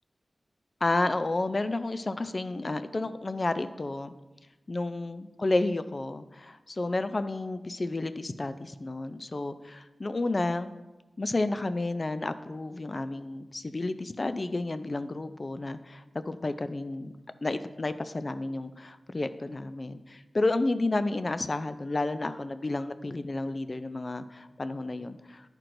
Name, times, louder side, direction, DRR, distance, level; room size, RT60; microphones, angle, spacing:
voice 1, 0.8-4.2 4.7-10.7 11.2-17.1 17.4-25.5, left 2 dB, 40° left, 11 dB, 0.3 m, -31 dB
11.0 x 4.4 x 2.6 m, 1.1 s
wide cardioid pair, 80°, 0 cm